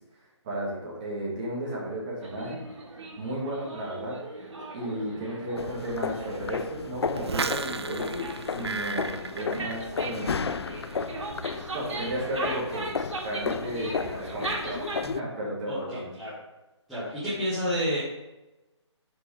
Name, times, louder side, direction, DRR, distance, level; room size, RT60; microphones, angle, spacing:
voice 1, 0.2-2.6 3.2-4.2 4.7-10.5 10.9-11.1 11.7-12.9 13.2-16.1, right 1 dB, 15° right, -6 dB, 1.9 m, -34 dB
sound 1, 2.2-15.0, right 2 dB, 75° right, 2.2 m, -39 dB
sound 2, 5.6-15.2, left 5 dB, 60° left, 0.4 m, -34 dB
sound 3, 7.1-10.2 10.5-10.9, right 4 dB, 60° right, 0.5 m, -34 dB
voice 2, 15.7-16.3 16.9-18.0, equal, ahead, -15 dB, 0.8 m, -30 dB
7.6 x 6.2 x 5.0 m, 1.0 s
hypercardioid pair, 175°, 16 cm